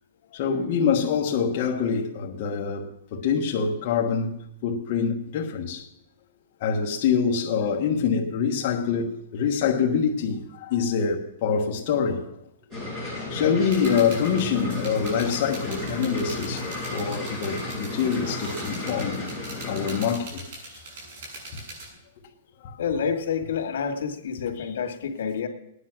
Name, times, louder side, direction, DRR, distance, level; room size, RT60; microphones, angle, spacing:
voice 1, 0.3-5.9 6.6-12.3 13.3-19.2 19.7-20.4 21.5-21.6 22.6-22.8, left 6 dB, 35° left, 1.3 m, -25 dB
sound 1, 12.7-20.1, left 2 dB, 15° right, 5.8 m, -33 dB
sound 2, 13.6-21.9, right 2 dB, 60° right, 7.0 m, -42 dB
voice 2, 22.8-25.5, left 6 dB, 75° left, 2.0 m, -28 dB
18.0 x 10.0 x 6.0 m
supercardioid pair, 180°, 0 cm